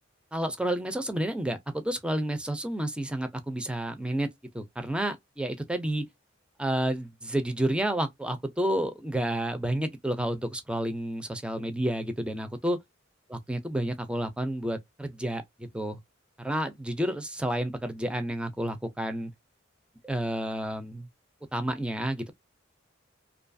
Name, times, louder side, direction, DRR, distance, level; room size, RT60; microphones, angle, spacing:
voice 1, 0.3-4.3 4.5-6.1 6.6-12.8 13.3-16.0 16.4-19.3 20.0-21.1 21.5-22.3, right 1 dB, 5° right, 0.4 m, -30 dB
2.6 x 2.3 x 2.6 m
head